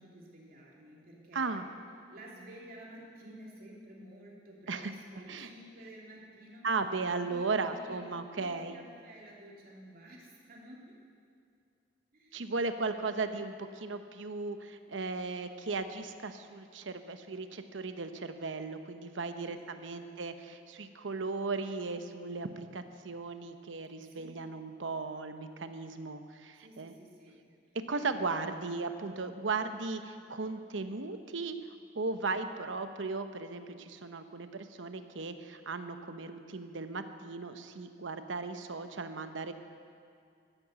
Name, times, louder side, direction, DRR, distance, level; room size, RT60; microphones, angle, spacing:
voice 1, 0.0-1.6 2.1-6.7 7.0-10.9 12.1-13.1 19.3-20.2 24.0-24.3 26.5-27.5 27.9-28.3, right 1 dB, 50° right, -3 dB, 2.9 m, -52 dB
voice 2, 1.3-1.7 4.7-4.9 5.3-5.5 6.6-8.8 12.3-26.9 27.7-31.6 31.9-39.5, right 3 dB, 80° right, 9 dB, 0.9 m, -36 dB
13.5 x 9.7 x 8.2 m, 2.4 s
head